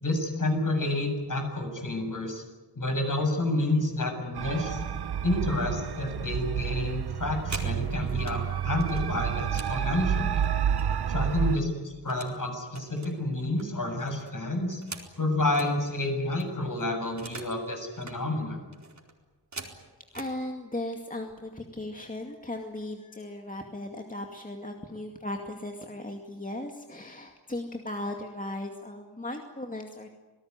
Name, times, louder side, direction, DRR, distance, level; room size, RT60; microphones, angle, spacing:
voice 1, 0.0-2.4 2.8-4.8 5.2-10.5 11.1-14.8 15.2-18.6, left 2 dB, 50° left, 4 dB, 7.3 m, -29 dB
sound 1, 4.4-11.6, right 9 dB, 65° right, 0.9 m, -30 dB
sound 2, 7.5-8.4 8.8-11.1 11.4-12.4 12.7-15.7 16.1-16.2 16.4-17.6 17.9-18.2 18.7-20.4 21.2-21.3 21.7-22.0 22.3-22.8, right 3 dB, 40° right, 4.3 m, -44 dB
voice 2, 20.1-30.1, left 1 dB, 20° left, 3 dB, 2.3 m, -37 dB
27.5 x 18.5 x 9.7 m, 1.2 s
wide cardioid pair, 95°, 42 cm